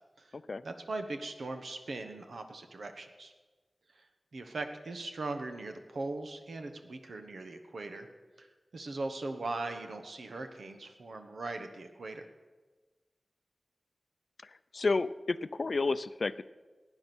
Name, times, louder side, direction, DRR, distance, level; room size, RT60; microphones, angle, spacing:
voice 1, 0.6-3.3 3.9-4.1 4.3-8.1 8.4-8.5 8.7-12.3, right 2 dB, 90° right, 6 dB, 1.2 m, -40 dB
voice 2, 14.7-16.4, left 3 dB, 60° left, 15 dB, 0.4 m, -31 dB
16.0 x 9.7 x 6.2 m, 1.3 s
wide cardioid pair, 65°, 0 cm